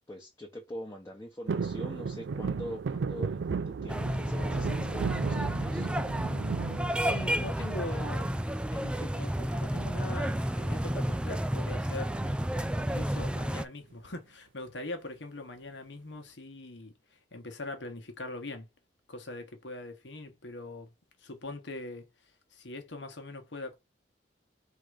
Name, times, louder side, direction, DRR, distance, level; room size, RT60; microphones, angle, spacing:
voice 1, 0.1-5.9, equal, 15° left, 0.9 m, -43 dB
sound 1, 1.5-7.7 8.1-8.7 10.0-10.4 10.6-10.7 11.0-11.3 12.2-13.1 13.5-13.6, right 5 dB, 85° right, 0.4 m, -35 dB
sound 2, 3.9-13.6, equal, 5° right, 0.3 m, -31 dB
voice 2, 7.0-12.2 12.8-18.7 19.1-20.9 21.2-22.1 22.5-23.8, left 2 dB, 90° left, 1.3 m, -42 dB
3.8 x 2.9 x 4.9 m
head